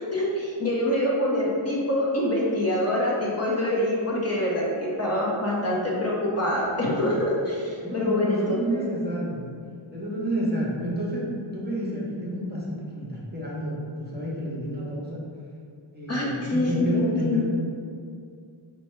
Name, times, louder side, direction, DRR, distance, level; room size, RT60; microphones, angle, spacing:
voice 1, 0.1-8.8 16.1-17.4, left 1 dB, 30° left, -5 dB, 0.8 m, -25 dB
voice 2, 7.8-9.4 9.9-11.3 11.5-15.2 15.9-17.4, right 1 dB, 20° right, -6 dB, 0.8 m, -30 dB
4.1 x 2.3 x 4.3 m, 2.3 s
wide cardioid pair, 85°, 49 cm